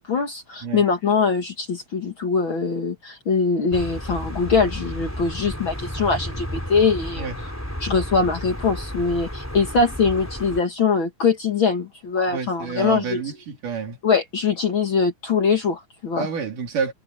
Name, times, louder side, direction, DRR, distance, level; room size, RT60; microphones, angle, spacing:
voice 1, 0.0-7.3 7.8-13.2 14.0-16.3, left 5 dB, 45° left, 2.1 m, -22 dB
sound 1, 3.7-10.6, equal, 5° left, 3.4 m, -32 dB
voice 2, 12.3-14.0 16.2-16.9, right 6 dB, 85° right, 4.6 m, -29 dB
omnidirectional pair, 3.6 m